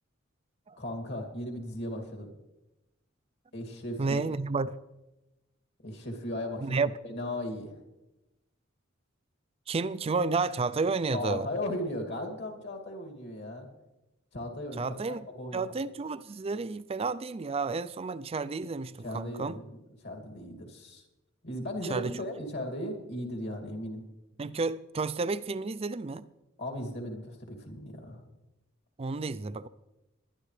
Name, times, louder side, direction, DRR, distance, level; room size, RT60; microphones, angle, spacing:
voice 1, 0.8-2.3 3.5-4.2 5.8-7.7 11.1-13.7 14.3-14.8 15.4-15.7 19.0-19.8 20.0-21.0 21.4-24.0 26.6-28.2, left 1 dB, 60° left, 2.5 m, -37 dB
voice 2, 4.0-4.7 6.6-6.9 9.7-11.5 14.8-15.2 15.5-19.6 21.9-22.2 24.4-26.2 29.0-29.7, right 4 dB, 30° right, 0.4 m, -31 dB
21.0 x 11.0 x 3.3 m
head